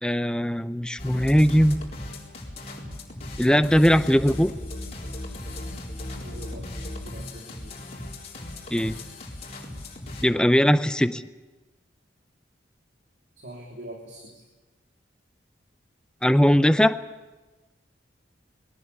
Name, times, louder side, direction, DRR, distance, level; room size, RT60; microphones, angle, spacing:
voice 1, 0.0-1.8 3.4-4.5 8.7-9.0 10.2-11.2 16.2-17.0, equal, 5° left, 11 dB, 0.6 m, -20 dB
sound 1, 1.0-10.2, left 1 dB, 35° left, 4.3 m, -37 dB
voice 2, 6.2-7.9 13.4-14.4, equal, 60° right, 0 dB, 3.1 m, -43 dB
21.5 x 18.5 x 8.3 m, 1.2 s
head